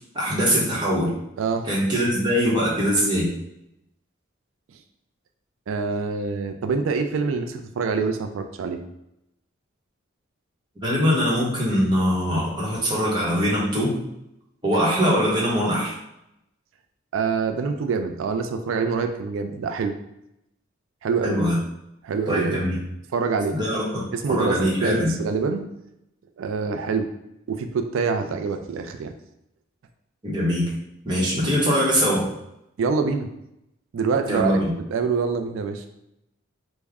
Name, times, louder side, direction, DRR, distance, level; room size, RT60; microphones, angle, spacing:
voice 1, 0.1-1.1 1.6-3.3 10.8-13.9 14.6-15.9 21.2-21.6 22.3-22.8 23.5-25.1 30.2-30.6 31.0-32.3 34.3-34.7, equal, 20° right, -5 dB, 0.8 m, -22 dB
voice 2, 5.7-8.8 17.1-20.0 21.0-21.4 22.0-22.6 23.1-23.6 24.1-25.6 26.4-27.1 27.5-29.1 32.8-33.3 33.9-34.6 34.9-35.9, right 5 dB, 80° right, 7 dB, 0.3 m, -25 dB
3.4 x 2.1 x 3.5 m, 0.84 s
head